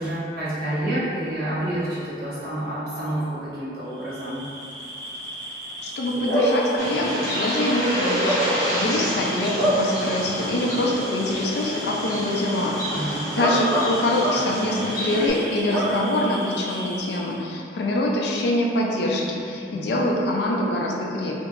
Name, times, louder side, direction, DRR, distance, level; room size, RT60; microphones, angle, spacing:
voice 1, 0.0-4.4 12.9-13.2 19.7-19.9, right 1 dB, 55° right, -10 dB, 0.9 m, -28 dB
Bark / Cricket, 4.0-17.3, equal, 85° right, 0.5 m, -28 dB
voice 2, 5.8-21.3, left 1 dB, 65° left, -2 dB, 0.4 m, -25 dB
Bird, 6.8-15.3, equal, 20° left, 0.6 m, -30 dB
3.0 x 2.6 x 2.4 m, 2.5 s
head